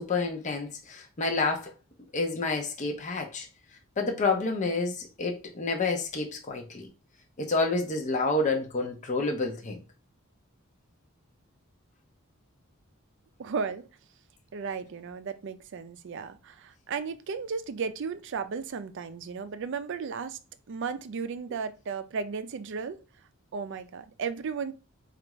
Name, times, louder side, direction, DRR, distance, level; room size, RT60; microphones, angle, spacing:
voice 1, 0.0-1.7 2.1-3.5 4.0-6.9 7.4-9.8, left 3 dB, 35° left, 0.6 m, -29 dB
voice 2, 13.4-13.8 14.5-20.4 20.7-23.0 23.5-24.7, right 5 dB, 60° right, 0.4 m, -34 dB
4.5 x 2.4 x 3.0 m
head